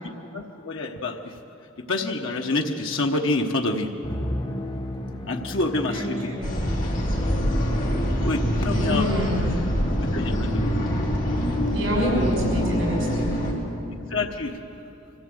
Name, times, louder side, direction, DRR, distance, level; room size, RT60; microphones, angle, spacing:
voice 1, 0.0-1.2 1.9-3.9 5.3-6.3 8.2-9.1 10.1-10.7 13.0-13.1 14.1-14.6, left 2 dB, 80° left, 2 dB, 1.2 m, -27 dB
Musical instrument, 4.0-12.6, left 1 dB, 25° left, 1.3 m, -33 dB
voice 2, 5.8-6.6 8.6-9.4 11.7-13.3, equal, 80° right, -2 dB, 6.4 m, -27 dB
sound 1, 6.4-13.5, equal, 45° left, 3.5 m, -25 dB
25.0 x 15.5 x 7.8 m, 2.9 s
head